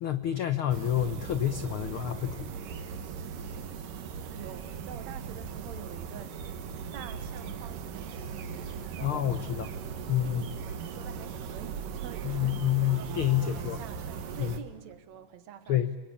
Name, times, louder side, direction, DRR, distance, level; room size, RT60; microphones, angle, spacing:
voice 1, 0.0-2.5 9.0-9.7 10.1-10.5 12.2-13.8 14.4-14.5 15.7-15.9, left 11 dB, 85° left, 1.1 m, -28 dB
sound 1, 0.7-14.6, right 6 dB, 85° right, 3.2 m, -38 dB
voice 2, 4.3-6.4 6.9-9.8 10.2-15.8, right 9 dB, 65° right, 2.4 m, -48 dB
29.5 x 23.5 x 8.6 m
omnidirectional pair, 3.7 m